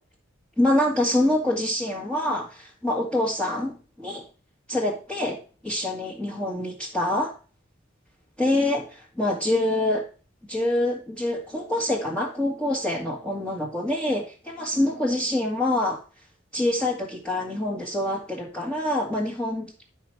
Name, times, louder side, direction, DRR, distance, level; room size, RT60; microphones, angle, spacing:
voice 1, 0.6-4.2 4.7-7.3 8.4-10.1 10.5-16.0 16.5-19.7, left 1 dB, 5° left, -6 dB, 1.8 m, -26 dB
11.5 x 4.6 x 5.8 m, 0.37 s
head